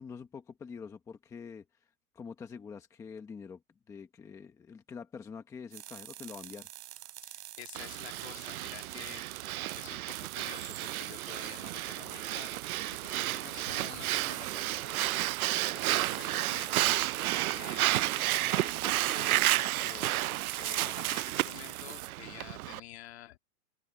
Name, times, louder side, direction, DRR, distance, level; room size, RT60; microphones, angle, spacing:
voice 1, 0.0-3.6 3.9-7.1, left 6 dB, 5° left, 1.0 m, -46 dB
sound 1, 5.7-22.1, right 15 dB, 50° right, 3.6 m, -46 dB
voice 2, 7.2-9.2 9.7-16.8 17.0-20.2 20.6-23.4, left 15 dB, 50° left, 2.0 m, -49 dB
Breathing, 7.7-22.8, right 16 dB, 90° right, 0.6 m, -32 dB
open air
supercardioid pair, 170°, 42 cm